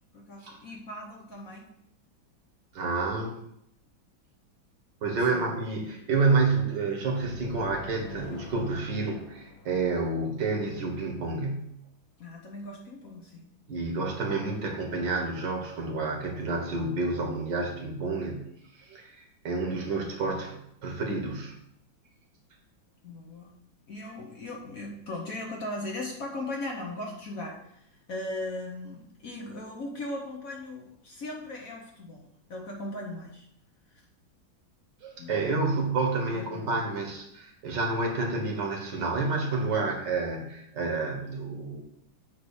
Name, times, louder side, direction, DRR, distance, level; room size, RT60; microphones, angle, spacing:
voice 1, 0.1-1.7 5.3-5.5 12.2-13.5 23.0-23.5 23.9-33.5 35.2-35.4 36.3-36.6, left 1 dB, 50° left, -1 dB, 1.2 m, -38 dB
voice 2, 2.7-3.4 5.0-11.7 13.7-18.5 18.8-20.6 20.8-21.5 35.0-41.8, right 3 dB, 60° right, 0 dB, 2.0 m, -29 dB
sound 1, 7.2-10.9, left 2 dB, 85° left, 1.8 m, -45 dB
8.3 x 3.2 x 6.3 m, 0.76 s
omnidirectional pair, 2.2 m